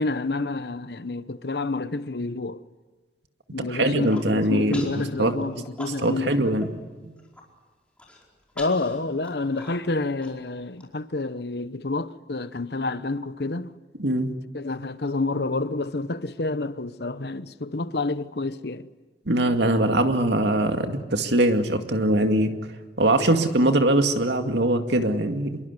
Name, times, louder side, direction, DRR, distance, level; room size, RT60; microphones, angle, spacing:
voice 1, 0.0-2.6 3.5-6.6 8.6-13.8 14.5-18.9, left 3 dB, 60° left, 1.0 m, -29 dB
voice 2, 3.6-5.4 6.0-6.7 7.0-7.1 14.0-14.3 19.3-22.5 23.0-25.6, right 1 dB, 75° right, 2.3 m, -22 dB
Human voice, 3.8-4.3 4.7-5.0 5.4-6.3 6.6-6.7 7.1-7.4 8.0-10.8, left 2 dB, 5° left, 4.8 m, -43 dB
26.5 x 22.5 x 9.8 m
head